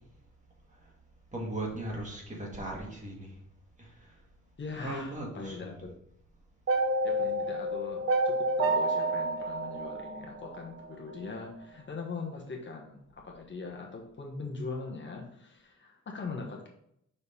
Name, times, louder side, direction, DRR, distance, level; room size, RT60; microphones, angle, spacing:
voice 1, 1.3-3.3 3.8-4.2 4.8-5.7, right 1 dB, 25° right, -1 dB, 1.5 m, -38 dB
voice 2, 4.6-5.9 7.0-16.7, left 4 dB, 40° left, 0 dB, 1.1 m, -41 dB
sound 1, 6.7-10.9, right 1 dB, 45° right, 0.8 m, -29 dB
5.5 x 5.1 x 4.2 m, 0.74 s
wide cardioid pair, 175°, 30 cm